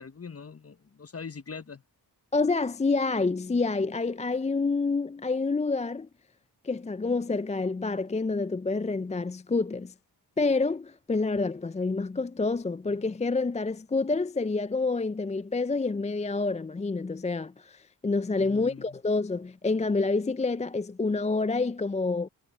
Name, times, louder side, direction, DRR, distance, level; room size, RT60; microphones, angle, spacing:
voice 1, 0.0-1.8 18.4-19.0, left 5 dB, 35° left, 0.9 m, -42 dB
voice 2, 2.3-6.1 6.6-9.9 10.4-22.3, left 3 dB, 15° left, 0.4 m, -28 dB
cardioid pair, 45°, 43 cm